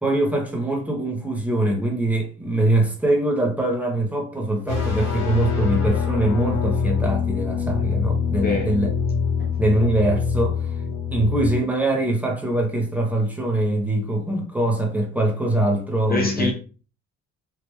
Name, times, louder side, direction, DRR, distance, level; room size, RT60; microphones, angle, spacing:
voice 1, 0.0-8.9 9.6-10.8 11.1-16.5, right 1 dB, 5° right, 1.2 m, -23 dB
sound 1, 4.7-11.5, left 6 dB, 55° left, 1.7 m, -24 dB
voice 2, 16.1-16.5, left 3 dB, 30° left, 0.7 m, -24 dB
3.4 x 2.9 x 3.1 m
cardioid pair, 90°, 30 cm